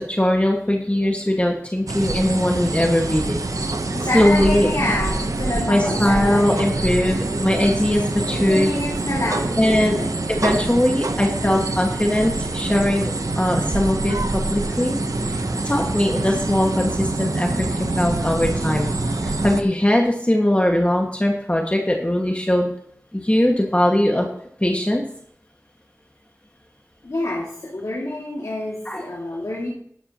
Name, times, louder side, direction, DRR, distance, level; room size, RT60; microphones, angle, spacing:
voice 1, 0.0-3.4 4.1-4.7 5.7-8.7 9.6-10.0 10.3-15.0 15.3-15.4 15.6-18.9 19.2-22.7 23.1-24.3 24.6-25.0 28.8-29.0, left 1 dB, 20° left, 1 dB, 1.6 m, -20 dB
sound 1, 1.9-19.6, right 2 dB, 80° right, 0.8 m, -25 dB
voice 2, 3.9-6.8 8.3-10.1 27.0-29.7, left 1 dB, 90° left, -4 dB, 2.2 m, -27 dB
12.5 x 11.5 x 2.9 m, 0.66 s
wide cardioid pair, 40°, 6 cm